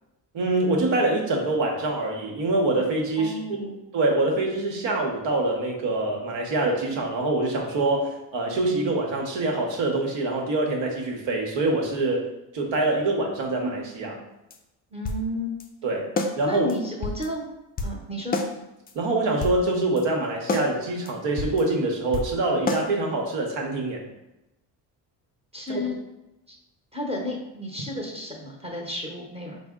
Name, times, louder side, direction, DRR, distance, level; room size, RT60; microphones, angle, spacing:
voice 1, 0.3-3.3 3.6-12.3 12.5-14.2 15.8-16.1 16.4-16.7 18.9-24.1 25.7-25.8, right 2 dB, 70° right, 0 dB, 1.0 m, -25 dB
voice 2, 3.2-3.8 14.9-15.5 16.4-17.4 17.8-18.4 25.5-25.9 26.5-26.6 26.9-29.6, left 1 dB, 15° right, -1 dB, 0.9 m, -32 dB
sound 1, 14.5-14.6 15.1-15.3 15.6-15.7 16.2-16.4 16.7-16.8 17.0-17.3 17.8-18.0 18.3-18.5 18.9-19.0 19.3-19.6 20.0-20.1 20.5-20.7 21.1-21.2 21.4-21.6 22.1-22.4 22.7-22.8, left 2 dB, 25° left, 0.3 m, -28 dB
4.0 x 2.1 x 3.6 m, 0.95 s
cardioid pair, 85°, 45 cm